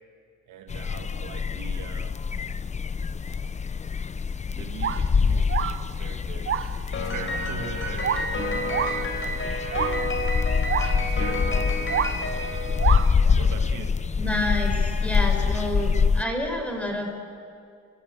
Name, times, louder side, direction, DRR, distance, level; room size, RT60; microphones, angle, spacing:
voice 1, 0.5-2.2 3.2-3.7 4.6-6.5 6.8-8.9 9.6-9.9 10.7-11.9 13.4-13.9, right 6 dB, 85° right, 6 dB, 1.7 m, -42 dB
sound 1, 0.7-16.2, left 5 dB, 25° left, 0.6 m, -26 dB
sound 2, 4.8-6.9 7.3-7.4 7.7-7.8 8.0-10.3 10.7-12.5 12.8-13.4, right 8 dB, 45° right, 0.8 m, -30 dB
Piano, 6.9-13.4, left 1 dB, 40° left, 4.5 m, -31 dB
voice 2, 14.2-17.1, left 1 dB, 5° left, 2 dB, 5.4 m, -28 dB
30.0 x 17.5 x 8.1 m, 2.4 s
cardioid pair, 90°, 30 cm